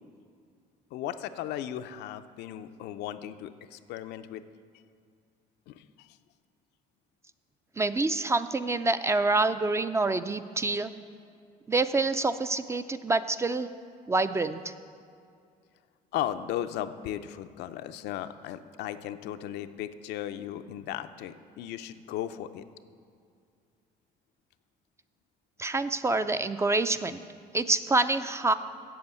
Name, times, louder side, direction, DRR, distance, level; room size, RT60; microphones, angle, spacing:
voice 1, 0.9-4.4 5.7-6.1 16.1-22.6, left 11 dB, 80° left, 10 dB, 0.5 m, -36 dB
voice 2, 7.8-10.9 11.7-13.7 14.1-14.7 25.6-27.2 27.5-28.5, right 3 dB, 15° right, 11 dB, 0.3 m, -26 dB
7.9 x 7.0 x 8.1 m, 2.3 s
cardioid pair, 110°, 17 cm